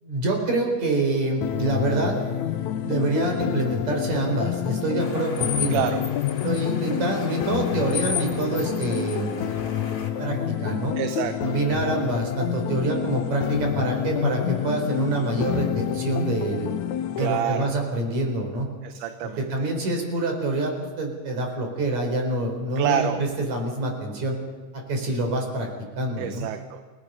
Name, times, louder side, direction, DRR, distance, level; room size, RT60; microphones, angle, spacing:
voice 1, 0.0-2.2 2.8-5.8 6.4-9.5 10.2-11.0 11.4-16.7 17.1-18.7 19.2-24.4 24.7-25.7 26.0-26.5, right 2 dB, 60° right, 2 dB, 5.5 m, -26 dB
sound 1, 1.4-17.4, left 11 dB, 75° left, 2.0 m, -28 dB
sound 2, 5.0-10.1, left 6 dB, 45° left, 3.1 m, -34 dB
voice 2, 5.7-6.0 11.0-11.5 17.2-17.7 18.8-19.4 22.8-23.2 26.2-26.8, right 9 dB, 80° right, 7 dB, 2.5 m, -27 dB
29.0 x 18.0 x 5.5 m, 1.5 s
omnidirectional pair, 3.7 m